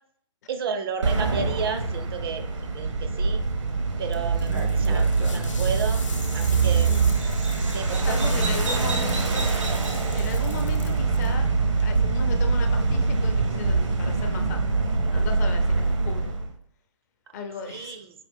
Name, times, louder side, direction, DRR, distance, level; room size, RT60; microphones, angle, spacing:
voice 1, 0.5-2.5 2.7-3.4 4.0-6.1 6.3-7.0 7.7-8.3 17.7-18.1, right 6 dB, 50° right, 8 dB, 0.5 m, -32 dB
sound 1, 1.0-16.5, right 4 dB, 70° right, 0.8 m, -24 dB
sound 2, 4.1-11.3, left 5 dB, 75° left, 0.8 m, -42 dB
Bird vocalization bird call bird song, 4.4-10.7, right 3 dB, 90° right, 1.7 m, -37 dB
voice 2, 6.9-7.2 8.0-9.5 10.1-11.5 11.8-14.8 15.1-16.3 17.3-18.0, left 5 dB, 35° left, 5 dB, 0.5 m, -36 dB
5.0 x 2.4 x 3.4 m, 0.62 s
figure-of-eight pair, 135°, 16 cm